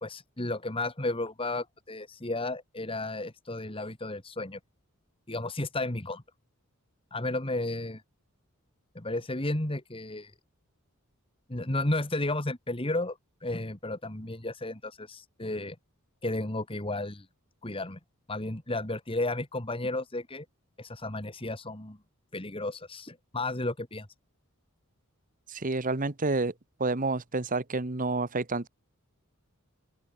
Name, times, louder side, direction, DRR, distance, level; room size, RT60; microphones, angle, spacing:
voice 1, 0.0-4.6 5.3-6.2 7.1-8.0 9.0-10.3 11.5-15.8 16.2-17.3 17.6-18.0 18.3-20.5 20.8-22.0 22.3-24.1, left 2 dB, 25° left, 2.1 m, -33 dB
voice 2, 25.5-26.5 26.8-28.7, right 3 dB, 35° right, 1.2 m, -29 dB
open air
head